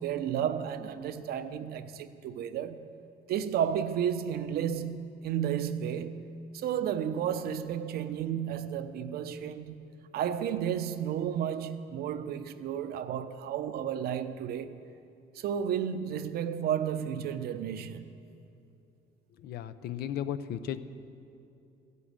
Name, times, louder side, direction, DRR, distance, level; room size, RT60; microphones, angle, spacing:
voice 1, 0.0-2.9 3.3-6.2 6.5-9.8 10.1-14.8 15.3-18.0, right 9 dB, 65° right, 0.8 m, -32 dB
voice 2, 19.4-20.8, left 10 dB, 70° left, 0.8 m, -35 dB
14.5 x 8.4 x 9.0 m
cardioid pair, 110°, 17 cm